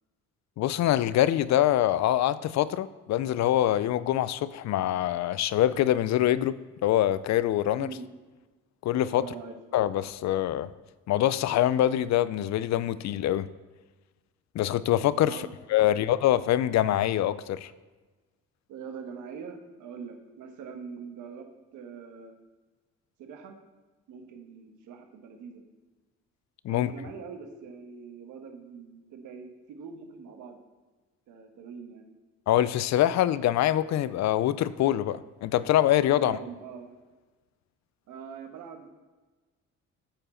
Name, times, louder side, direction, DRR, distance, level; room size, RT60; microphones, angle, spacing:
voice 1, 0.6-7.9 8.8-9.3 9.7-10.7 11.1-13.5 14.5-15.4 15.7-17.7 26.6-26.9 32.5-36.4, left 12 dB, 65° left, 17 dB, 0.4 m, -24 dB
voice 2, 7.8-8.1 9.1-9.5 15.3-16.1 18.7-22.3 23.2-23.6 24.1-25.6 26.7-30.6 31.3-32.1 36.1-37.0 38.1-38.9, right 6 dB, 85° right, 5 dB, 1.2 m, -43 dB
13.0 x 4.5 x 4.3 m, 1.3 s
cardioid pair, 90°, 30 cm